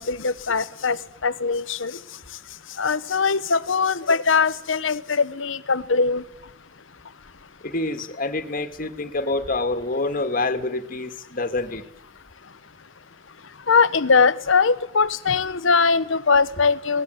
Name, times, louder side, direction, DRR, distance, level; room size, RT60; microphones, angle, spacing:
voice 1, 0.0-2.0 2.8-6.2 13.7-17.0, left 5 dB, 80° left, 1.0 m, -21 dB
voice 2, 7.6-11.8, left 2 dB, 45° left, 2.0 m, -27 dB
27.0 x 19.5 x 9.3 m
head